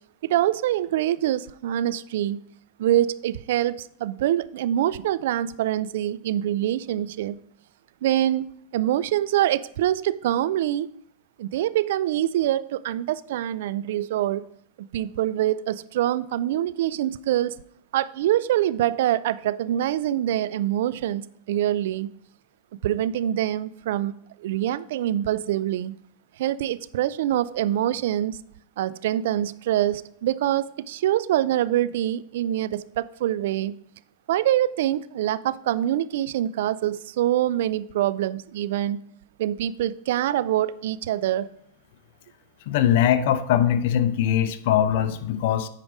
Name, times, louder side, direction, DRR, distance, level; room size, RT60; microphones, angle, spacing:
voice 1, 0.2-2.4 2.8-7.4 8.0-8.5 8.7-10.9 11.4-14.4 14.9-17.5 17.9-22.1 22.8-24.1 24.4-25.9 26.4-28.4 28.8-33.7 34.3-39.0 39.4-41.5, right 12 dB, 70° right, 17 dB, 0.4 m, -25 dB
voice 2, 42.7-45.7, left 10 dB, 65° left, 11 dB, 0.7 m, -21 dB
9.0 x 5.0 x 4.9 m, 0.70 s
hypercardioid pair, 115°, 0 cm